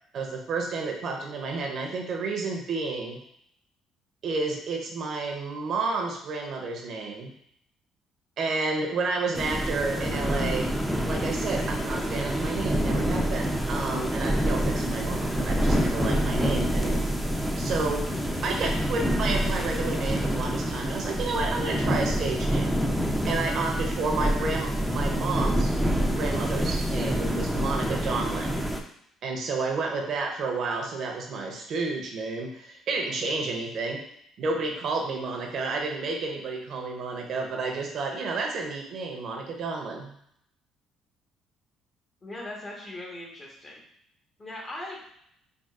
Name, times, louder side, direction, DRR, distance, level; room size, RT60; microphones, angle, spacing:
voice 1, 0.1-3.2 4.2-7.3 8.4-10.7 11.0-17.0 17.6-22.7 23.3-25.7 26.2-28.6 29.2-34.0 34.4-40.1, right 3 dB, 60° right, 2 dB, 0.6 m, -31 dB
sound 1, 9.3-28.8, equal, ahead, 0.4 m, -27 dB
voice 2, 42.2-43.8 44.4-45.0, left 1 dB, 35° left, -2 dB, 1.0 m, -39 dB
3.6 x 2.4 x 2.4 m, 0.71 s
supercardioid pair, 65°, 0 cm